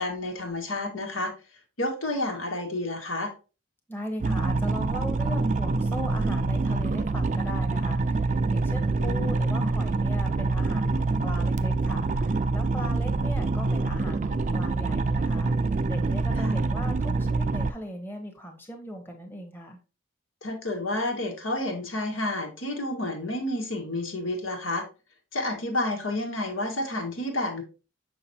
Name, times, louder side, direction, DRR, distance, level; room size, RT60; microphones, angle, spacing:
voice 1, 0.0-1.3 1.8-3.3 9.0-9.3 16.4-16.6 20.4-24.9 25.3-27.6, left 1 dB, 85° left, 2 dB, 1.8 m, -30 dB
voice 2, 3.9-19.8, equal, 10° left, 3 dB, 1.0 m, -39 dB
sound 1, 4.2-17.7, right 3 dB, 35° right, 0.3 m, -26 dB
6.2 x 5.8 x 2.8 m, 0.32 s
head